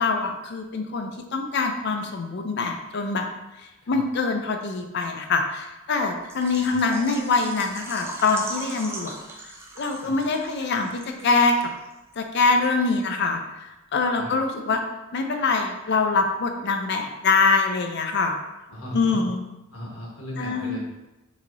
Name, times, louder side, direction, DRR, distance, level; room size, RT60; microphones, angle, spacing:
voice 1, 0.0-3.3 3.6-9.2 9.8-10.9 11.2-11.7 12.2-14.8 15.1-18.3 18.9-19.4 20.4-20.8, left 4 dB, 55° left, 5 dB, 0.5 m, -24 dB
Water / Liquid, 6.3-11.9 12.2-12.3 12.7-12.8, right 2 dB, 10° right, 0.4 m, -39 dB
voice 2, 18.7-19.3 19.7-20.8, equal, 85° left, -3 dB, 1.4 m, -37 dB
6.1 x 2.8 x 2.6 m, 1.0 s
head